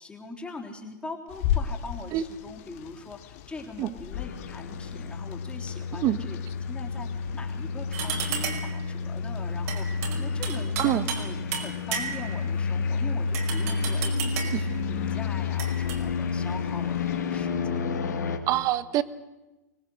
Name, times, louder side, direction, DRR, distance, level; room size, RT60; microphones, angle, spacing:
voice 1, 0.0-18.3, left 3 dB, 10° left, 1 dB, 3.6 m, -42 dB
sound 1, 1.3-17.5, left 10 dB, 55° left, 2.2 m, -39 dB
sound 2, 4.1-18.4, left 5 dB, 80° left, 3.2 m, -30 dB
sound 3, 7.9-8.8 9.7-11.3 11.5-12.4 13.3-14.7 15.6-16.0, right 7 dB, 55° right, 5.3 m, -33 dB
voice 2, 18.5-19.0, right 14 dB, 35° right, 16 dB, 1.3 m, -24 dB
24.5 x 18.5 x 7.9 m, 1.1 s
hypercardioid pair, 115°, 9 cm